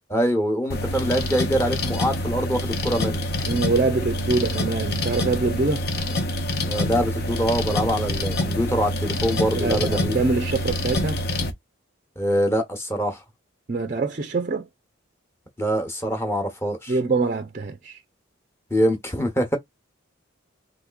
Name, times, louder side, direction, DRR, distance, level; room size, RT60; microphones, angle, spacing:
voice 1, 0.1-3.2 6.6-10.2 12.2-13.2 15.6-16.9 18.7-19.6, equal, 10° left, 0.9 m, -24 dB
sound 1, 0.7-11.5, left 1 dB, 50° left, 0.7 m, -26 dB
voice 2, 3.4-5.8 9.5-11.2 13.7-14.7 16.9-18.0, right 3 dB, 40° right, 0.5 m, -24 dB
3.5 x 3.2 x 2.3 m
head